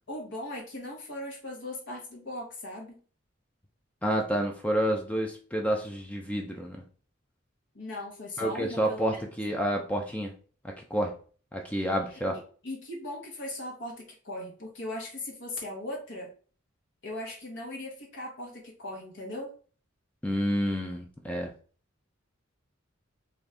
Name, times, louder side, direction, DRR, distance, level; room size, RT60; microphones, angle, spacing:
voice 1, 0.1-3.0 7.7-9.3 12.1-12.2 12.6-16.3 17.0-19.5, left 1 dB, 60° left, -1 dB, 1.1 m, -38 dB
voice 2, 4.0-6.8 8.4-10.3 10.6-11.1 11.5-12.4 20.2-21.5, equal, 5° left, 2 dB, 0.4 m, -29 dB
3.9 x 2.6 x 3.3 m, 0.41 s
head